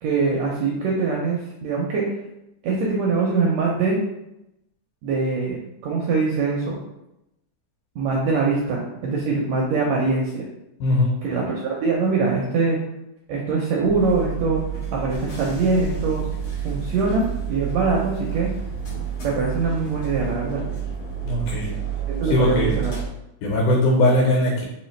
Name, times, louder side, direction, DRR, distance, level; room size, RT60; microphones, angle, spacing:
voice 1, 0.0-2.1 2.6-4.0 5.0-6.8 7.9-10.5 11.2-12.8 13.3-14.6 14.9-16.2 16.6-18.5 19.2-20.6 22.1-22.9, right 4 dB, 80° right, -2 dB, 1.6 m, -23 dB
voice 2, 10.8-11.2 21.2-21.7 22.3-22.8 23.4-24.6, left 1 dB, 85° left, -2 dB, 2.4 m, -20 dB
sound 1, 13.8-23.1, right 8 dB, 50° left, 1.9 m, -29 dB
4.8 x 2.8 x 3.1 m, 0.87 s
omnidirectional pair, 3.6 m